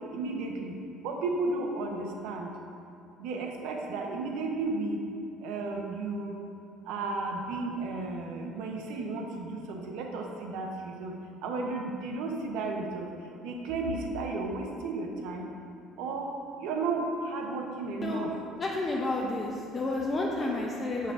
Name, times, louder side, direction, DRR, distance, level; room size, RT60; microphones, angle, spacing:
voice 1, 0.1-0.8 1.0-2.5 3.2-5.0 5.4-6.4 6.9-11.1 11.4-13.1 13.4-15.4 16.0-16.3 16.6-18.3, right 3 dB, 80° right, 1 dB, 0.7 m, -33 dB
voice 2, 18.6-21.1, left 2 dB, 25° left, -2 dB, 0.4 m, -30 dB
7.1 x 5.5 x 2.5 m, 2.6 s
cardioid pair, 155°, 0 cm